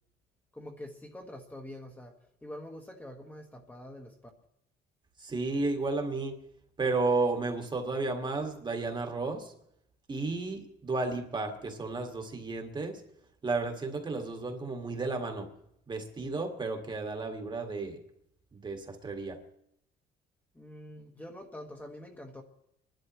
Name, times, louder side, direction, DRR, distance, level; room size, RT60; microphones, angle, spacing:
voice 1, 0.5-4.2 20.5-22.4, left 1 dB, 10° left, 2 dB, 1.6 m, -45 dB
voice 2, 5.2-6.4 6.8-9.5 10.1-13.0 13.4-15.5 15.9-18.0 18.5-19.4, right 3 dB, 25° right, 4 dB, 1.9 m, -32 dB
27.5 x 11.5 x 3.1 m, 0.77 s
cardioid pair, 110°, 17 cm